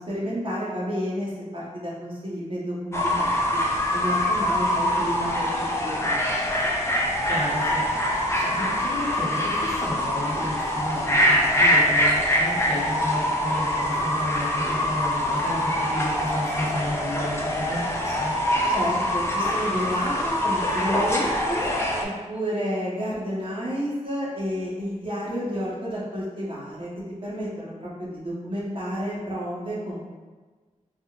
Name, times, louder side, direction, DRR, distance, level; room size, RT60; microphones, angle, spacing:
voice 1, 0.0-3.6 3.9-5.5 5.8-6.3 18.7-21.6 22.0-26.9 27.2-30.0, equal, 40° right, -7 dB, 1.0 m, -30 dB
Fowl / Bird, 2.9-22.0, left 1 dB, 20° left, 0.4 m, -24 dB
voice 2, 7.3-18.3, left 1 dB, 60° left, -6 dB, 0.9 m, -32 dB
3.8 x 2.4 x 2.3 m, 1.4 s
wide cardioid pair, 100°, 13 cm